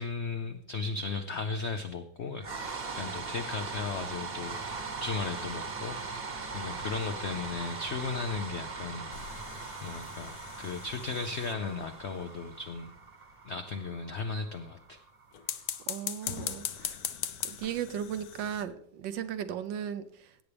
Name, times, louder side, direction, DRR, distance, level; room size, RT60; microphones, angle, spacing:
voice 1, 0.0-9.1 9.8-12.9 13.4-15.0, left 4 dB, 85° left, 7 dB, 0.6 m, -36 dB
sound 1, 2.4-16.5, right 4 dB, 35° right, 1.1 m, -40 dB
sound 2, 9.1-11.9 15.3-18.6, left 9 dB, 65° left, 1.1 m, -39 dB
voice 2, 15.9-17.0 17.4-20.4, right 9 dB, 75° right, 11 dB, 1.4 m, -36 dB
17.0 x 8.2 x 3.4 m, 0.66 s
omnidirectional pair, 2.0 m